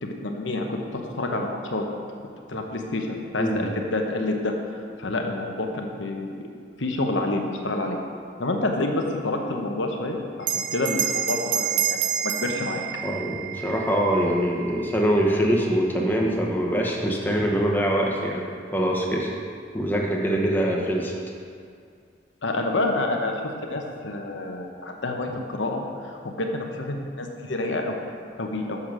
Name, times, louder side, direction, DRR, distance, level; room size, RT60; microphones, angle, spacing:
voice 1, 0.0-1.8 2.5-4.5 5.0-6.5 6.8-8.0 8.4-12.0 12.2-12.8 22.4-23.3 23.6-28.0 28.4-28.8, left 2 dB, 85° left, 2 dB, 1.0 m, -28 dB
Bell, 10.4-15.3, right 9 dB, 45° right, 0.4 m, -29 dB
voice 2, 13.0-18.4 18.7-19.3 19.7-21.1, equal, 10° left, -1 dB, 1.0 m, -23 dB
7.1 x 6.7 x 6.1 m, 2.3 s
head